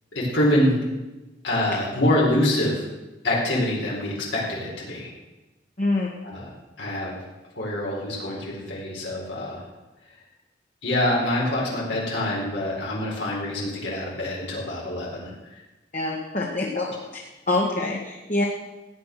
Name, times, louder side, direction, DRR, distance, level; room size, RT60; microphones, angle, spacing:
voice 1, 0.1-0.8 1.4-2.9 3.2-5.1 6.2-6.5 6.8-7.2 7.6-9.6 10.8-15.6, left 1 dB, 75° left, -4 dB, 4.3 m, -25 dB
voice 2, 5.8-6.1 15.9-16.9 17.5-18.4, left 2 dB, 40° left, -2 dB, 1.8 m, -25 dB
16.0 x 9.4 x 6.7 m, 1.1 s
head